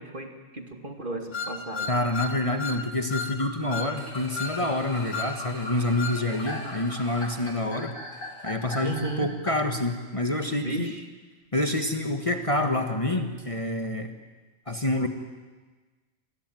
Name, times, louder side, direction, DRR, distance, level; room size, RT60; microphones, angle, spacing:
voice 1, 0.0-1.9 8.8-9.3 10.6-11.0, right 2 dB, 40° right, 4 dB, 2.6 m, -35 dB
sound 1, 1.3-2.8 3.1-3.3 3.7-3.9 4.3-4.6 5.1-5.3 6.0-6.2, left 5 dB, 65° left, 2.2 m, -33 dB
voice 2, 1.9-8.0 8.4-10.9 11.5-14.1 14.7-15.1, left 1 dB, 25° left, 5 dB, 1.8 m, -27 dB
sound 2, 3.4-9.5, left 2 dB, 80° left, 3.5 m, -39 dB
sound 3, 3.9-8.7 9.1-9.2, equal, 65° right, 6.9 m, -45 dB
28.0 x 20.5 x 9.3 m, 1.3 s
omnidirectional pair, 1.3 m